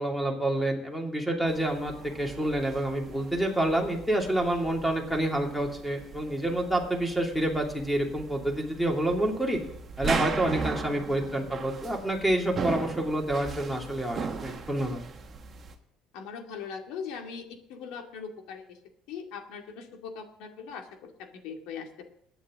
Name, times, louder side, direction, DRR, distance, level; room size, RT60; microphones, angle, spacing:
voice 1, 0.0-9.6 10.0-15.0, right 1 dB, ahead, 1 dB, 2.5 m, -28 dB
sound 1, 1.5-15.7, right 5 dB, 25° right, 1.4 m, -38 dB
voice 2, 16.1-18.8 19.1-22.0, left 6 dB, 75° left, 4 dB, 2.3 m, -40 dB
22.0 x 9.4 x 3.7 m, 0.70 s
cardioid pair, 155°, 0 cm